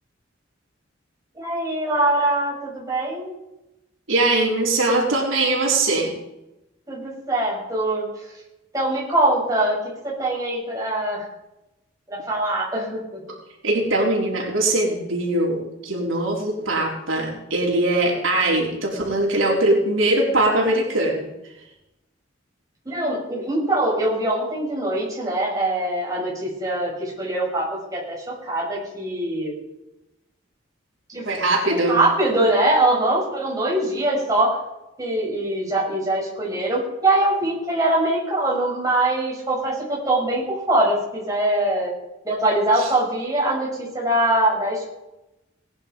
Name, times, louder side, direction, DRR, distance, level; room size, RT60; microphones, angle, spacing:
voice 1, 1.3-3.3 6.9-8.3 8.7-11.2 12.1-13.2 22.8-29.5 31.1-31.3 31.7-34.6 35.0-41.9 42.2-44.9, right 1 dB, 15° right, -5 dB, 5.9 m, -23 dB
voice 2, 4.1-6.1 13.6-21.3 31.3-32.0 42.8-42.9, right 2 dB, 85° right, -2 dB, 4.0 m, -21 dB
19.0 x 10.5 x 5.3 m, 0.92 s
head